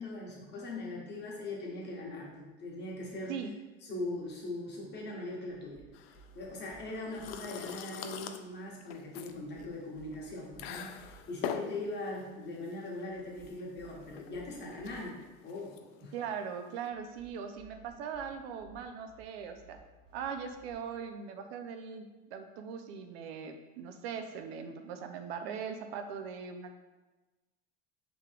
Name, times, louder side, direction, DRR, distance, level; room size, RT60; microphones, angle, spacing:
voice 1, 0.0-3.4 3.8-16.1, left 2 dB, 35° left, -3 dB, 1.4 m, -41 dB
sound 1, 5.5-7.4 9.3-11.2 13.1-15.0 16.9-20.7, right 6 dB, 5° left, 1.4 m, -59 dB
sound 2, 5.9-16.9, left 8 dB, 70° left, 0.5 m, -44 dB
voice 2, 16.1-19.8 20.1-26.7, right 7 dB, 75° right, 6 dB, 0.6 m, -40 dB
4.9 x 3.1 x 3.4 m, 1.2 s
supercardioid pair, 115°, 31 cm